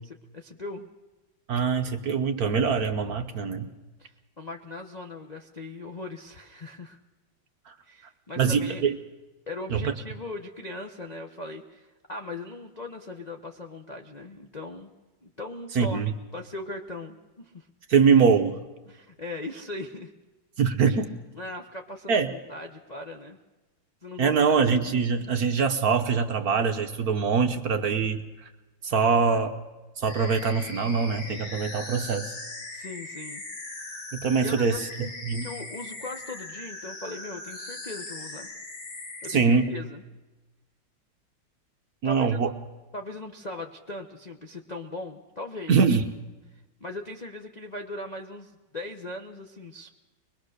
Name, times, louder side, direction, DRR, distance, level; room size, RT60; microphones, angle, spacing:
voice 1, 0.0-0.9 4.0-7.0 7.8-8.8 9.5-14.9 15.2-17.7 18.9-20.1 20.9-21.0 21.3-23.4 24.0-24.3 29.2-29.4 32.7-33.4 34.4-35.1 35.4-38.5 39.2-40.0 42.0-42.5 42.9-45.7 46.5-49.9, left 2 dB, 40° left, 1 dB, 0.6 m, -39 dB
voice 2, 1.5-3.7 7.7-7.8 8.4-9.0 9.7-9.9 15.7-16.1 17.9-18.6 20.6-21.1 22.1-22.3 24.2-28.2 28.8-29.5 30.0-32.3 34.1-35.5 39.3-39.7 42.0-42.5 45.7-46.1, right 5 dB, 55° right, 7 dB, 1.1 m, -23 dB
sound 1, 30.0-39.7, left 2 dB, 65° left, 3.1 m, -40 dB
23.5 x 21.0 x 6.5 m, 1.2 s
omnidirectional pair, 2.3 m